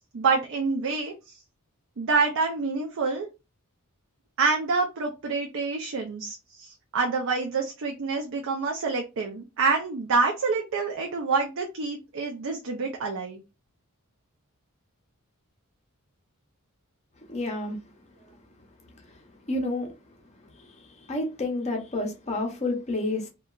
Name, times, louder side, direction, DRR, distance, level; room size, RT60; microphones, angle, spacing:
voice 1, 0.1-1.4 2.0-3.3 4.4-13.4, right 4 dB, 60° right, 0.5 m, -27 dB
voice 2, 17.3-17.8 19.5-19.9 20.6-23.3, left 2 dB, 30° left, 0.6 m, -30 dB
2.8 x 2.2 x 2.3 m
head